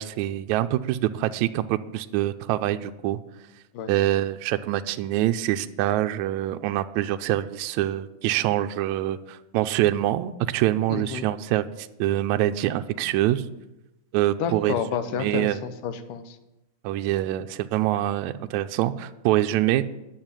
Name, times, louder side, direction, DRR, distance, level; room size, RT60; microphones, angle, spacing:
voice 1, 0.0-3.2 3.9-13.4 14.1-14.8 15.1-15.6 16.8-19.8, right 14 dB, 80° right, 9 dB, 1.8 m, -25 dB
voice 2, 10.9-11.3 14.4-16.4, left 7 dB, 90° left, 10 dB, 2.5 m, -30 dB
10.5 x 7.1 x 9.0 m, 0.96 s
omnidirectional pair, 3.6 m